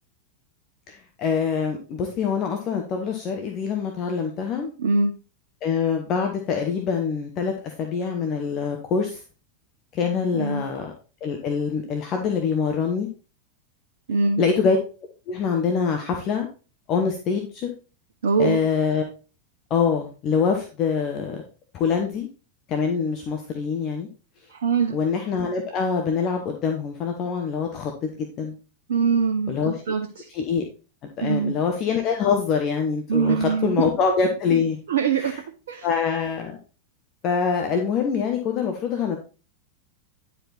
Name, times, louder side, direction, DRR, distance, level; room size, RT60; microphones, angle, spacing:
voice 1, 0.9-4.7 5.6-9.2 9.9-10.9 11.2-13.1 14.4-14.8 15.3-16.5 16.9-17.7 18.4-19.0 19.7-21.4 21.7-22.3 22.7-24.1 24.9-28.5 29.5-29.7 30.3-30.7 31.2-34.8 35.2-35.4 35.8-36.6 37.2-39.2, left 6 dB, 35° left, 3 dB, 1.2 m, -24 dB
voice 2, 4.8-5.1 10.3-10.6 14.1-14.4 18.2-18.6 24.5-24.9 28.9-30.2 31.2-31.5 33.1-33.9 34.9-35.3 35.7-35.9, right 5 dB, 60° right, 4 dB, 0.8 m, -23 dB
10.0 x 4.9 x 4.1 m, 0.34 s
figure-of-eight pair, 90°, 0 cm